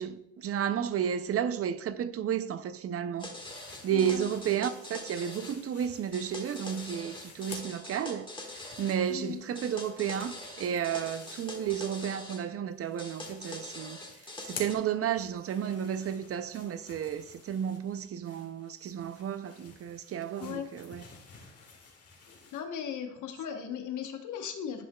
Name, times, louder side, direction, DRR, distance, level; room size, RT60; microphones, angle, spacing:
voice 1, 0.0-3.3 3.8-14.0 14.4-21.1, right 9 dB, 50° right, 0.5 m, -32 dB
sound 1, 3.2-5.6 6.1-9.0 9.6-12.4 13.0-14.8, left 2 dB, 15° left, 1.4 m, -44 dB
sound 2, 3.3-7.9 8.2-12.4 12.7-22.6, left 4 dB, 50° left, 1.8 m, -52 dB
voice 2, 3.9-4.2 9.1-9.4 20.4-20.7 22.5-24.9, left 8 dB, 80° left, 1.0 m, -37 dB
11.0 x 5.6 x 2.2 m
cardioid pair, 90°, 30 cm